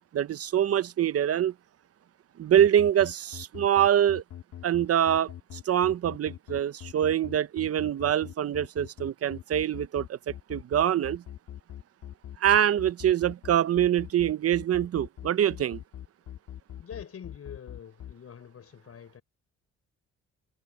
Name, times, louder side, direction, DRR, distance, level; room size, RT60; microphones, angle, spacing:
voice 1, 0.1-1.5 2.4-4.2 4.6-10.2 10.5-11.2 12.4-15.8, right 10 dB, 50° right, 0.8 m, -24 dB
sound 1, 2.6-18.1, left 10 dB, 70° left, 2.0 m, -42 dB
voice 2, 16.8-19.2, left 8 dB, 50° left, 6.2 m, -45 dB
cardioid pair, 90°, 30 cm